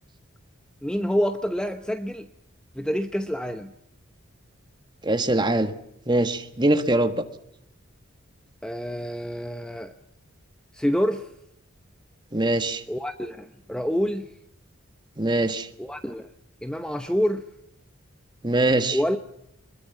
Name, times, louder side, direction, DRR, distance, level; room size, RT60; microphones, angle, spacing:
voice 1, 0.8-2.3 2.7-3.7 8.6-9.9 10.7-11.3 12.9-14.3 15.8-16.2 16.6-17.5 18.9-19.2, equal, 5° left, 9 dB, 0.8 m, -27 dB
voice 2, 5.0-5.7 6.1-7.2 12.3-12.8 15.2-15.7 18.4-19.0, right 1 dB, 20° right, 9 dB, 1.6 m, -22 dB
24.0 x 21.5 x 7.1 m, 0.77 s
head